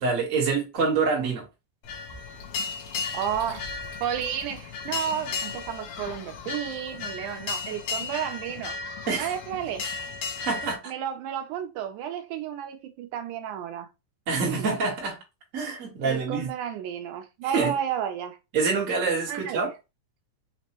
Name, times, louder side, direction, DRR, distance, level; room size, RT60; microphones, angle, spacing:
voice 1, 0.0-1.4 9.1-9.3 10.4-10.8 14.3-15.2 15.5-16.5 17.5-17.7 18.5-19.7, right 4 dB, 55° right, 0.8 m, -26 dB
sound 1, 1.8-10.8, left 5 dB, 90° left, 1.3 m, -35 dB
voice 2, 3.1-3.7 4.0-8.8 9.2-9.9 10.9-13.9 14.4-14.7 16.0-18.4 19.3-19.7, right 9 dB, 80° right, 2.0 m, -32 dB
5.2 x 2.1 x 2.9 m
omnidirectional pair, 3.7 m